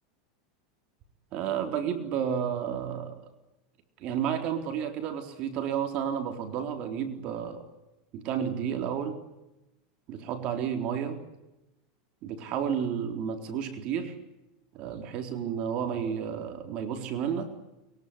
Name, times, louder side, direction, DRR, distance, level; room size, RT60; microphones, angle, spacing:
voice 1, 1.3-3.1 4.0-7.6 8.1-9.2 10.1-11.2 12.2-14.2 14.7-17.5, right 8 dB, 45° right, 6 dB, 3.9 m, -31 dB
23.5 x 22.5 x 10.0 m, 0.95 s
supercardioid pair, 145°, 2 cm